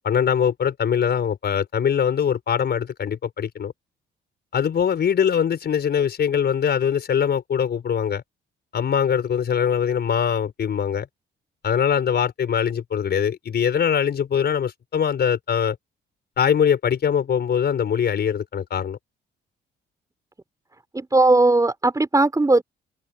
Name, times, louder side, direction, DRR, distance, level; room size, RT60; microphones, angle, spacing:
voice 1, 0.0-3.7 4.5-8.2 8.7-11.1 11.6-15.8 16.4-19.0, left 8 dB, 55° left, 5.0 m, -22 dB
voice 2, 20.9-22.6, right 2 dB, 15° right, 5.0 m, -18 dB
cardioid pair, 90°, 20 cm